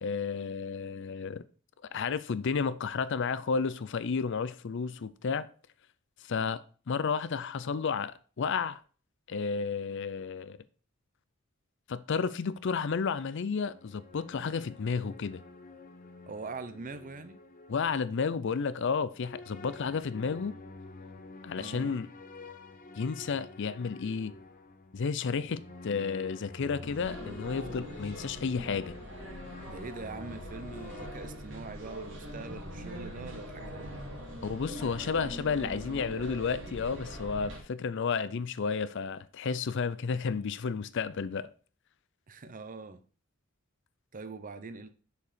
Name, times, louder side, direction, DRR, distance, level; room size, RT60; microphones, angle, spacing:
voice 1, 0.0-1.4 1.9-5.5 6.3-8.8 9.3-10.6 11.9-15.4 17.7-20.5 21.4-22.1 23.0-24.3 24.9-28.9 34.4-41.5, left 5 dB, 60° left, 0.5 m, -32 dB
sound 1, 12.6-18.5 19.1-31.6, left 2 dB, 40° left, 0.9 m, -49 dB
voice 2, 16.3-17.4 21.6-22.1 29.7-34.0 42.3-43.0 44.1-44.9, right 4 dB, 40° right, 0.7 m, -43 dB
sound 2, 26.8-37.6, equal, 60° right, 2.7 m, -43 dB
6.8 x 4.7 x 5.0 m
head